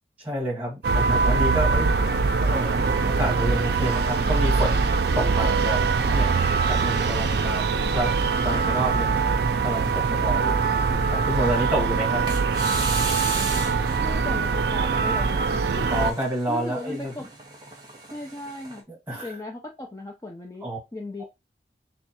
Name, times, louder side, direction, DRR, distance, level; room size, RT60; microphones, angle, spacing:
voice 1, 0.2-4.9 5.1-6.3 6.7-9.2 9.6-10.6 11.0-12.2 15.9-17.3 18.9-19.4 20.6-20.8 21.2-21.3, equal, 10° right, 1.4 m, -29 dB
sound 1, 0.8-16.1, right 4 dB, 60° right, 0.4 m, -23 dB
sound 2, 7.9-8.1 8.7-8.8 9.5-10.2 12.3-14.0 15.9-18.8, right 3 dB, 25° right, 0.9 m, -36 dB
voice 2, 14.0-16.1 16.5-17.2 18.1-18.8 19.2-20.7 20.9-21.2, left 1 dB, 20° left, 0.5 m, -36 dB
3.6 x 2.3 x 4.1 m
head